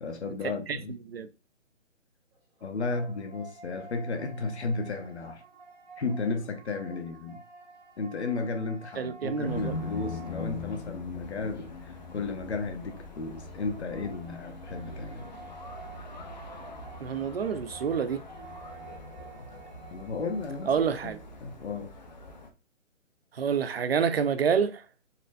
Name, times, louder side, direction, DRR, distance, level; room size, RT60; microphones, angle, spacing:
voice 1, 0.0-1.0 2.6-5.4 6.0-7.4 8.0-11.7 12.1-15.3 19.9-21.1 21.4-21.9, left 3 dB, 55° left, 0.9 m, -34 dB
sound 1, 2.3-11.0 13.3-21.1, right 4 dB, 10° right, 0.8 m, -50 dB
voice 2, 9.0-9.7 17.0-18.2 20.7-21.2 23.3-24.8, right 6 dB, 50° right, 0.5 m, -28 dB
sound 2, 9.4-22.5, left 3 dB, 35° left, 0.5 m, -42 dB
4.3 x 3.0 x 2.5 m
hypercardioid pair, 155°, 39 cm